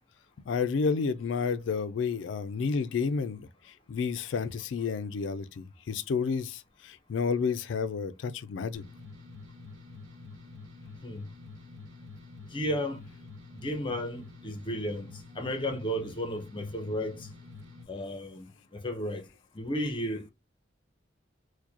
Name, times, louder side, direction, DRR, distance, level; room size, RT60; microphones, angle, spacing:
voice 1, 0.5-3.5 3.9-8.8, left 5 dB, 70° left, 0.3 m, -30 dB
sound 1, 8.7-17.8, left 3 dB, 85° right, 1.0 m, -47 dB
voice 2, 12.5-13.0 13.5-15.1 15.4-17.3 17.9-18.5 18.7-19.2 19.5-20.3, equal, 25° left, 0.7 m, -33 dB
4.5 x 2.1 x 2.8 m
head